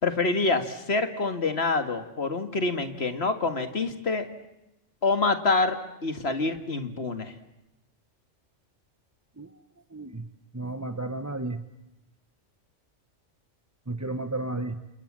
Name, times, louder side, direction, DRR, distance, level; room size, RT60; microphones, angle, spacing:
voice 1, 0.0-4.2 5.0-7.3, left 3 dB, 60° left, 8 dB, 2.2 m, -26 dB
voice 2, 9.9-10.3 10.5-11.6 13.9-14.8, right 2 dB, 15° right, 8 dB, 1.0 m, -32 dB
28.5 x 28.0 x 7.5 m, 0.92 s
omnidirectional pair, 1.2 m